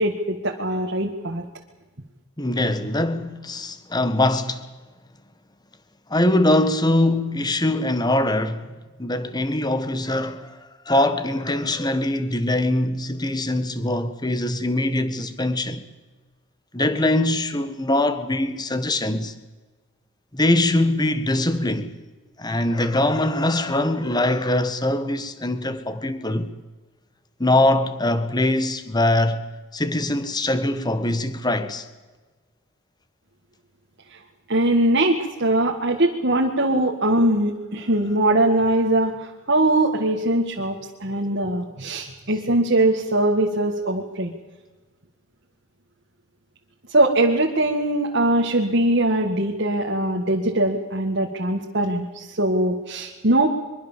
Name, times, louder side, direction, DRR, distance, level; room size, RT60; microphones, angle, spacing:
voice 1, 0.0-1.4 34.1-34.2 34.5-44.3 46.9-53.5, right 1 dB, 50° right, 1.9 m, -21 dB
voice 2, 2.4-4.7 6.1-8.7 9.0-10.6 10.8-15.8 16.7-19.3 20.3-22.0 22.4-26.5 27.4-29.4 29.7-31.9, left 1 dB, 20° left, 1.5 m, -22 dB
23.5 x 23.0 x 7.5 m
head